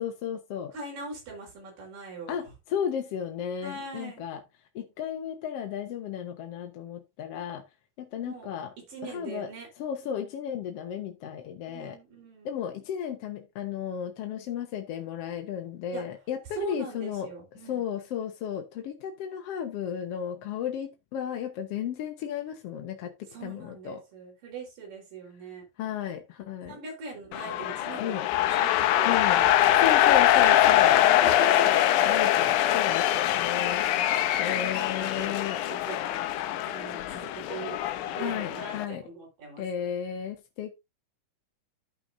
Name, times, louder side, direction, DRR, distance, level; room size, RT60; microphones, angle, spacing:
voice 1, 0.0-0.7 2.3-4.4 4.7-7.6 8.0-8.7 9.0-9.5 9.8-12.0 12.4-17.3 17.6-23.1 23.4-24.0 25.8-26.8 28.0-28.3 29.0-29.4 29.8-31.0 31.6-31.8 32.1-33.8 34.4-35.6 38.2-39.0 39.6-40.7, left 9 dB, 65° left, 1.7 m, -34 dB
voice 2, 0.7-2.5 3.6-4.2 8.2-8.5 8.9-9.7 11.7-12.5 15.9-16.0 16.5-17.8 23.3-25.6 26.7-28.2 28.5-29.8 30.3-31.7 34.4-36.2 36.7-37.8 38.1-39.9, right 4 dB, 90° right, 5.7 m, -41 dB
sound 1, 27.3-38.9, left 12 dB, 80° left, 2.1 m, -23 dB
14.0 x 5.9 x 2.6 m
omnidirectional pair, 3.7 m